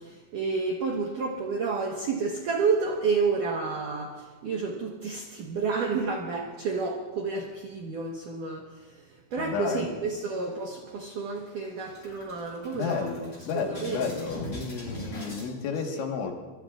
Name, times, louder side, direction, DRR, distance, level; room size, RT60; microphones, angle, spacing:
voice 1, 0.0-13.1 13.5-14.0 15.9-16.0, right 4 dB, 75° right, 0 dB, 1.9 m, -30 dB
voice 2, 9.4-9.9 12.7-16.3, left 5 dB, 75° left, 2 dB, 3.8 m, -32 dB
sound 1, 10.1-10.9 11.3-11.4 11.7-15.5, left 1 dB, 20° left, 7.1 m, -41 dB
24.5 x 23.0 x 2.4 m, 1.3 s
omnidirectional pair, 5.7 m